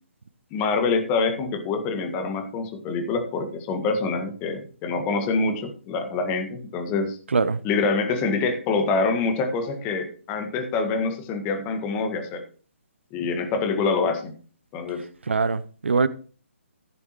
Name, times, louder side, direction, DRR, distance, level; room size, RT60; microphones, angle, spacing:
voice 1, 0.5-7.2 7.6-12.4 13.1-14.3 14.7-15.0, left 4 dB, 20° left, 1.7 m, -25 dB
voice 2, 15.3-16.1, right 4 dB, 65° right, 0.7 m, -22 dB
15.0 x 7.9 x 3.1 m
figure-of-eight pair, 135°, 7 cm